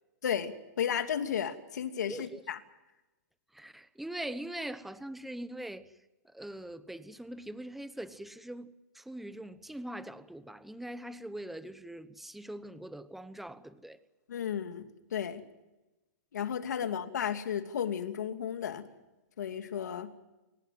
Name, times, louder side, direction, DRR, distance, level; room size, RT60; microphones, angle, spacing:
voice 1, 0.2-2.6 14.3-14.8 15.1-15.4 16.3-18.8 19.4-20.1, left 8 dB, 85° left, 2.7 m, -33 dB
voice 2, 2.1-2.4 3.5-5.9 6.3-14.0, right 1 dB, ahead, 1.0 m, -42 dB
29.0 x 17.0 x 7.7 m
hypercardioid pair, 155°, 9 cm